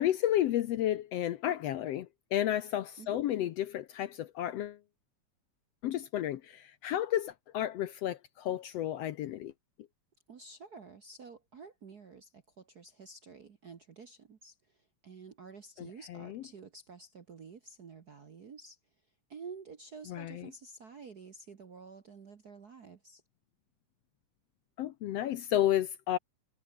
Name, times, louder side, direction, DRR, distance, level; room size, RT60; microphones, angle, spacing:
voice 1, 0.0-4.8 5.8-9.5 15.8-16.4 20.1-20.5 24.8-26.2, left 12 dB, 70° left, 1.7 m, -32 dB
voice 2, 10.3-18.8 19.3-23.2, right 5 dB, 50° right, 1.2 m, -50 dB
omnidirectional pair, 3.5 m